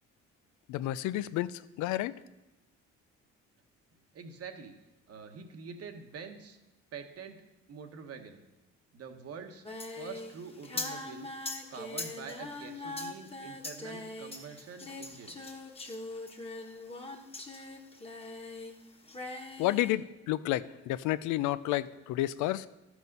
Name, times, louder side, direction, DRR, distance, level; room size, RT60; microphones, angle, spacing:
voice 1, 0.7-2.2 19.6-22.7, left 15 dB, 85° left, 16 dB, 0.5 m, -31 dB
voice 2, 4.1-4.7 5.1-6.6 6.9-7.4 7.7-8.4 8.9-9.6 9.9-11.3 11.7-15.4, right 5 dB, 55° right, 6 dB, 1.3 m, -45 dB
Singing, 9.6-18.8 19.0-19.9, left 2 dB, 20° left, 1.3 m, -41 dB
12.0 x 6.3 x 5.4 m, 1.0 s
cardioid pair, 95°, 29 cm